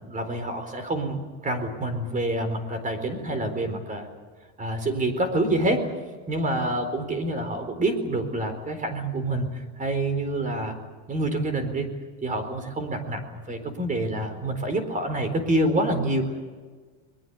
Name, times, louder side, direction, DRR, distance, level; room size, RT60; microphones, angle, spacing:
voice 1, 0.0-4.1 4.6-6.0 6.3-9.5 9.8-10.7 11.1-11.9 12.2-16.5, right 1 dB, 25° right, 9 dB, 4.2 m, -27 dB
22.0 x 22.0 x 8.4 m, 1.4 s
cardioid pair, 145°, 34 cm